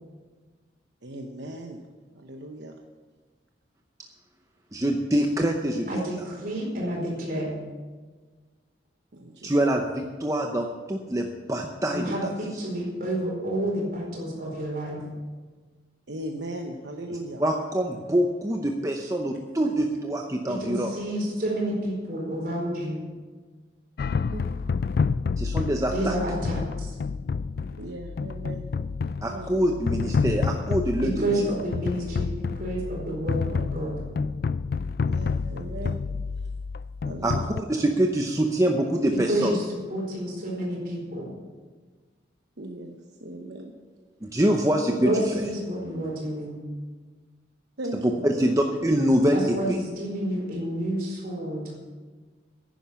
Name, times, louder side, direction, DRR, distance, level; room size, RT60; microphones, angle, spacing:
voice 1, 1.0-1.8 2.1-2.7 9.1-9.5 16.1-17.4 19.6-19.7 24.3-24.4 27.8-28.6 29.3-29.7 35.0-36.0 37.0-37.6 42.6-43.7 47.8-48.5, right 1 dB, 70° right, 3 dB, 0.9 m, -38 dB
voice 2, 4.7-6.2 9.4-12.7 17.4-20.9 25.4-26.1 29.2-31.5 37.2-39.5 44.2-45.4 48.0-49.8, right 1 dB, 15° right, 2 dB, 0.7 m, -25 dB
voice 3, 5.9-7.5 11.9-15.0 20.5-23.0 25.9-27.0 31.0-34.0 39.3-41.3 45.0-46.6 49.3-51.7, right 1 dB, 50° right, -2 dB, 4.4 m, -29 dB
sound 1, 24.0-37.6, left 5 dB, 55° left, 0.3 m, -29 dB
10.5 x 10.0 x 7.0 m, 1.4 s
head